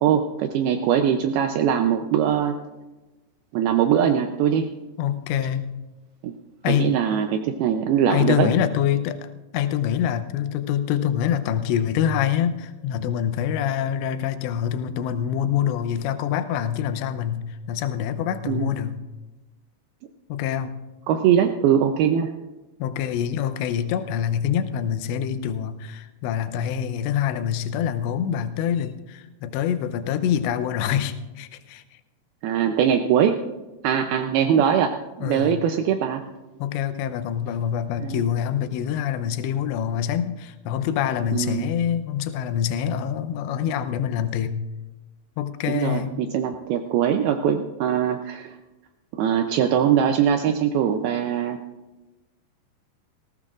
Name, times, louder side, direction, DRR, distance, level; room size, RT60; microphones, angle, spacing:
voice 1, 0.0-2.6 3.5-4.7 6.2-6.3 6.7-8.5 18.5-18.7 21.1-22.3 32.4-33.4 33.8-34.9 35.2-36.2 38.0-38.2 41.3-41.6 45.7-48.6 49.2-51.6, right 8 dB, 85° right, 6 dB, 2.2 m, -21 dB
voice 2, 5.0-5.7 6.6-6.9 8.1-19.0 20.3-20.7 22.8-31.8 35.2-35.6 36.6-44.6 45.4-46.1, left 9 dB, 80° left, 10 dB, 2.9 m, -25 dB
19.0 x 16.0 x 2.5 m, 1.1 s
omnidirectional pair, 5.1 m